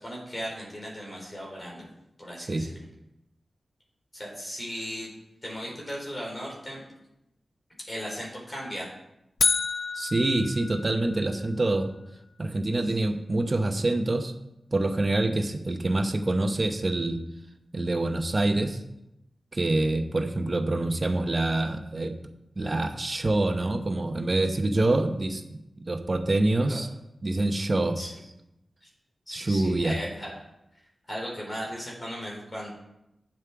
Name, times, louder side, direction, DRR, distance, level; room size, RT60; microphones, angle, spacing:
voice 1, 0.0-1.8 2.2-2.7 4.1-5.1 5.4-6.8 7.9-8.9 26.6-26.8 28.0-28.1 28.8-28.9 29.3-30.5 31.1-32.7, equal, 30° left, -3 dB, 3.9 m, -37 dB
sound 1, 9.4-11.5, left 4 dB, 85° left, 0.4 m, -29 dB
voice 2, 9.9-11.9 12.4-14.3 14.7-17.2 17.7-18.8 19.5-22.2 22.6-26.9 27.2-28.0 29.3-30.0, right 2 dB, 35° right, 6 dB, 0.9 m, -26 dB
9.2 x 7.4 x 4.7 m, 0.88 s
wide cardioid pair, 90°, 0 cm